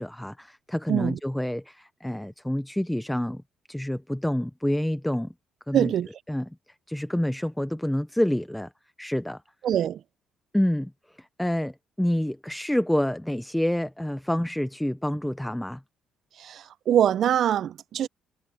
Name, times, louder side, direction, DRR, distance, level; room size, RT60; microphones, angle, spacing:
voice 1, 0.0-3.4 3.7-5.3 5.7-5.9 6.3-6.5 6.9-8.7 9.0-9.4 10.5-10.9 11.4-11.7 12.0-15.8, left 1 dB, 5° left, 0.5 m, -27 dB
voice 2, 0.9-1.2 5.7-6.1 9.6-10.0 16.4-18.1, right 10 dB, 55° right, 0.6 m, -23 dB
cardioid pair, 140°, 0 cm